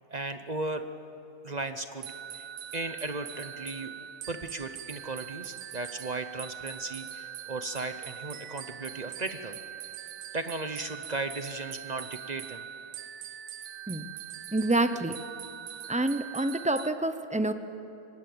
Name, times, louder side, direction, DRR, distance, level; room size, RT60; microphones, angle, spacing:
voice 1, 0.1-0.8 1.4-2.5 2.7-3.9 4.3-9.6 10.3-12.6, right 2 dB, 35° right, 9 dB, 0.8 m, -36 dB
sound 1, 2.0-16.9, right 10 dB, 70° right, 1.1 m, -42 dB
voice 2, 14.5-15.2 15.9-17.5, right 2 dB, 10° right, 10 dB, 0.3 m, -27 dB
25.0 x 18.5 x 7.9 m, 2.9 s
omnidirectional pair, 1.5 m